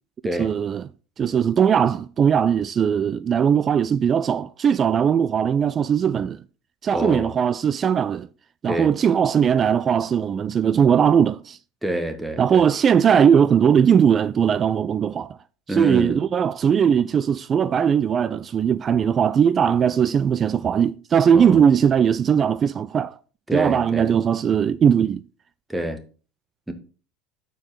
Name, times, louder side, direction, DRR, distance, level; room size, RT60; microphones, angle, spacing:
voice 1, 0.4-0.8 1.2-6.4 6.8-8.3 8.6-11.6 12.4-15.4 15.7-23.2 23.5-25.2, right 8 dB, 35° right, 0.3 m, -19 dB
voice 2, 6.9-7.4 8.6-8.9 11.8-12.6 15.7-16.2 21.3-21.6 23.5-24.1 25.7-26.0 26.7-26.8, right 1 dB, 5° right, 1.5 m, -27 dB
6.8 x 4.5 x 5.6 m
hypercardioid pair, 90°, 0 cm